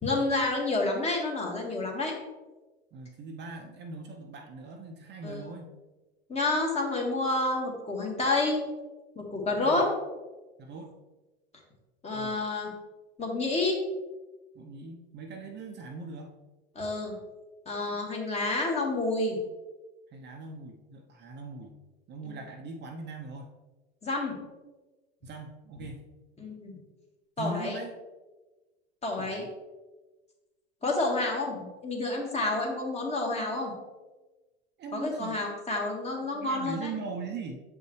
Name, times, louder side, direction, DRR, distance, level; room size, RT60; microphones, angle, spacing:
voice 1, 0.0-2.1 5.2-5.4 6.3-8.6 9.2-9.9 12.0-12.7 13.2-13.8 16.8-17.1 17.7-19.4 22.3-22.4 24.0-24.4 26.4-26.7 27.4-27.8 29.0-29.4 30.8-33.7 34.9-36.9, left 2 dB, 20° left, 0 dB, 1.8 m, -29 dB
voice 2, 2.9-5.7 9.5-9.9 10.6-10.9 12.1-12.4 14.5-16.3 20.1-21.7 22.1-23.5 25.2-26.0 27.4-27.9 29.2-29.5 34.8-35.4 36.3-37.6, right 3 dB, 35° right, 3 dB, 0.8 m, -40 dB
7.3 x 5.5 x 3.1 m, 1.2 s
hypercardioid pair, 100°, 31 cm